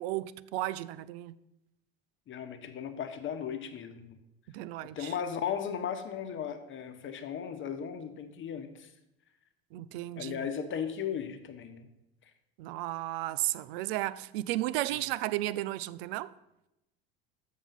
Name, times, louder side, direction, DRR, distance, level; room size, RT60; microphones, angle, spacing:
voice 1, 0.0-1.4 4.5-5.1 9.7-10.5 12.6-16.3, right 16 dB, 65° right, 0.5 m, -34 dB
voice 2, 2.3-4.2 4.9-8.9 10.2-11.9, left 8 dB, 40° left, 1.1 m, -36 dB
7.1 x 6.5 x 5.6 m
hypercardioid pair, 80°, 31 cm